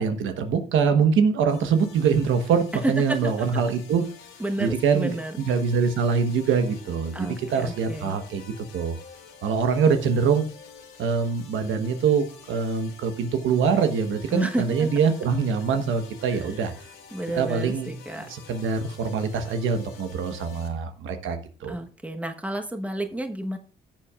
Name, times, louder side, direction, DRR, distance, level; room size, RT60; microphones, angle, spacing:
voice 1, 0.0-4.0 4.6-9.0 9.4-10.4 11.0-16.7 17.4-17.9 18.2-21.8, right 6 dB, 80° right, 7 dB, 1.2 m, -24 dB
sound 1, 1.5-20.7, left 6 dB, 85° left, 2.3 m, -48 dB
voice 2, 2.8-3.6 4.4-5.4 7.1-8.2 14.3-14.9 16.3-16.5 17.1-18.3 21.7-23.6, right 1 dB, 5° right, 5 dB, 1.1 m, -31 dB
16.0 x 7.4 x 2.4 m, 0.39 s
cardioid pair, 90°, 20 cm